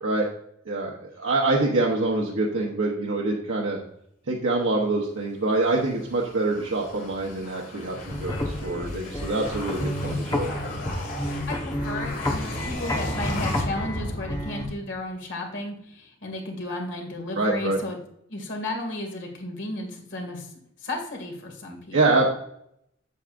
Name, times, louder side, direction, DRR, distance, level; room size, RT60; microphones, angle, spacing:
voice 1, 0.7-3.8 4.3-10.5 17.3-17.8 21.9-22.2, right 2 dB, 80° right, -2 dB, 1.0 m, -25 dB
sound 1, 5.5-14.9, left 1 dB, 45° left, 2.0 m, -36 dB
sound 2, 7.9-14.6, left 1 dB, 20° left, 1.1 m, -30 dB
voice 2, 11.5-18.0 18.3-20.5 20.8-22.2, left 1 dB, 65° left, 2 dB, 2.2 m, -34 dB
8.1 x 7.0 x 2.5 m, 0.72 s
head